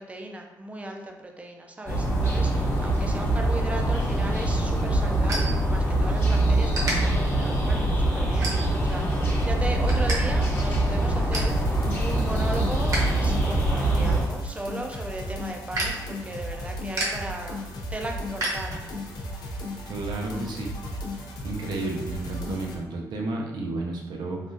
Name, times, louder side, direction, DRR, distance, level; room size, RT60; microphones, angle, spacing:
voice 1, 0.0-9.0 9.4-17.6 17.9-18.8, right 1 dB, 20° right, 2 dB, 0.4 m, -36 dB
sound 1, 1.9-14.2, right 1 dB, 35° left, 0.9 m, -24 dB
sound 2, 5.3-6.2 6.7-6.9 7.5-7.7 8.4-9.0 9.4-10.2 10.5-10.6 10.9-11.6 12.0-13.1 13.4-19.2, right 1 dB, 55° right, 0.9 m, -33 dB
sound 3, 11.5-22.8, left 1 dB, 75° left, 0.5 m, -35 dB
voice 2, 19.8-20.7 21.4-24.4, right 2 dB, 80° right, 0 dB, 0.6 m, -32 dB
3.4 x 2.3 x 2.6 m, 1.1 s
cardioid pair, 110°, 7 cm